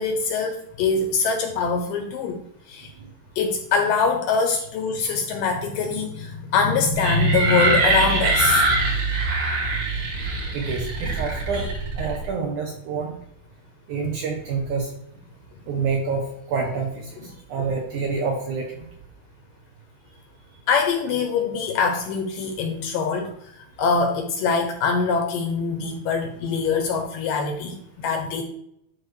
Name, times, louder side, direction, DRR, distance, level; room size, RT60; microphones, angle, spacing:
voice 1, 0.0-2.4 2.7-2.9 3.4-9.2 17.6-17.7 20.7-28.4, left 4 dB, 75° left, 4 dB, 2.1 m, -23 dB
sound 1, 7.0-12.3, right 3 dB, 50° right, 2.7 m, -23 dB
voice 2, 10.5-13.2 13.9-14.9 15.7-18.9, right 5 dB, 75° right, 1 dB, 1.9 m, -28 dB
11.5 x 4.1 x 3.2 m, 0.71 s
omnidirectional pair, 4.5 m